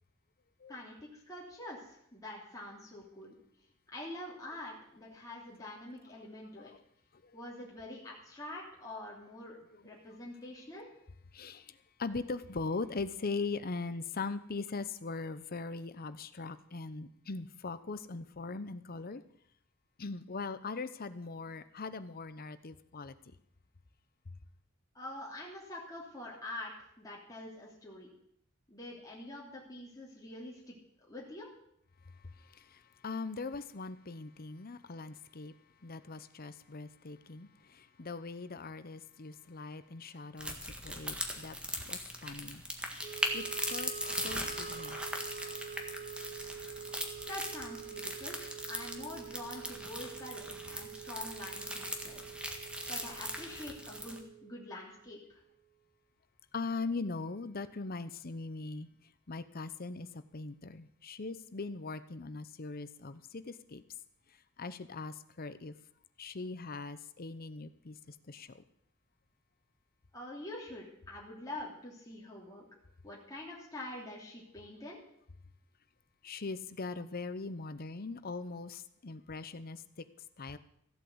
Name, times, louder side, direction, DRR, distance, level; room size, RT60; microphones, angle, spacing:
voice 1, 0.7-3.3 3.9-6.7 7.3-9.6 9.8-10.9 24.9-28.1 28.7-30.7 31.1-31.5 47.3-48.4 48.7-52.2 52.9-55.4 70.1-72.7 73.0-75.0, left 1 dB, 15° left, -4 dB, 2.8 m, -45 dB
voice 2, 6.2-6.8 7.2-7.3 10.0-10.2 11.3-19.2 20.0-23.3 32.2-35.5 35.8-42.6 43.3-43.4 43.7-45.0 56.5-58.9 59.3-63.8 64.6-65.7 66.2-68.6 76.2-80.0 80.4-80.6, left 3 dB, 45° left, 13 dB, 0.8 m, -41 dB
sound 1, 40.4-54.2, equal, 5° right, 1.8 m, -40 dB
Wind instrument woodwind instrument, 43.0-55.2, right 8 dB, 30° right, 1.0 m, -47 dB
15.0 x 8.3 x 7.8 m, 0.71 s
head